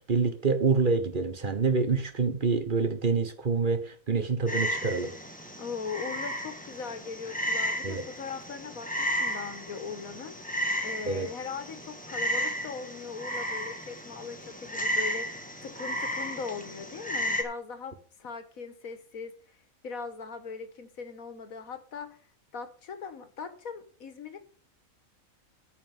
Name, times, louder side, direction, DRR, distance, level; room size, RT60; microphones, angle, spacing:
voice 1, 0.0-5.1 7.8-8.0 11.1-11.3, right 4 dB, 40° right, 1.2 m, -26 dB
Frog, 4.5-17.4, equal, 5° left, 1.7 m, -33 dB
voice 2, 5.6-19.6 19.8-22.2 22.5-24.4, left 5 dB, 90° left, 1.8 m, -40 dB
9.4 x 5.9 x 7.4 m
omnidirectional pair, 1.4 m